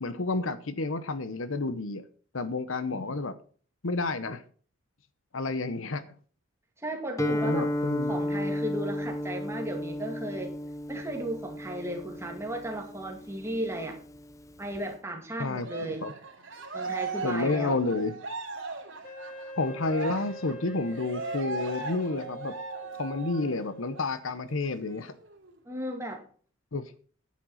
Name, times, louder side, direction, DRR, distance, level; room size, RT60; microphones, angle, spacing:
voice 1, 0.0-2.0 2.3-3.3 3.8-4.4 5.3-6.0 7.3-8.2 15.4-16.1 17.2-18.1 19.6-22.5 23.0-25.1 26.7-26.8, left 3 dB, 70° left, 0.9 m, -30 dB
voice 2, 6.8-7.7 8.1-10.6 10.9-14.0 14.6-16.1 16.7-17.8 25.7-26.2, right 1 dB, 10° right, 2.1 m, -35 dB
Guitar, 7.2-14.9, equal, 15° left, 0.5 m, -34 dB
Cheering, 15.6-23.6 23.9-24.1 24.5-25.5, right 4 dB, 60° right, 2.7 m, -38 dB
Wind instrument woodwind instrument, 19.0-24.1, equal, 35° left, 2.8 m, -44 dB
10.5 x 7.5 x 5.7 m
head